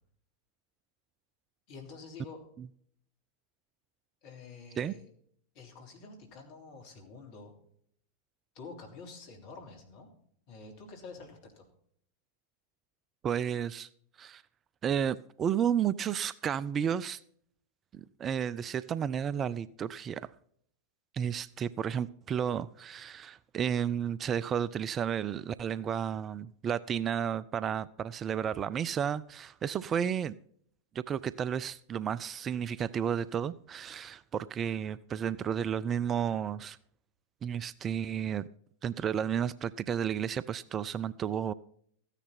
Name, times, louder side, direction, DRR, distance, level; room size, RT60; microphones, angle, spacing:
voice 1, 1.7-2.4 4.2-5.1 5.5-7.5 8.5-10.1 10.5-11.6, left 4 dB, 45° left, 3.2 m, -48 dB
voice 2, 13.2-13.9 14.2-14.4 14.8-17.2 17.9-20.3 21.1-30.4 30.9-36.8 37.4-38.5 38.8-41.5, right 8 dB, 25° right, 0.4 m, -32 dB
14.5 x 9.9 x 4.3 m
figure-of-eight pair, 90°, 0 cm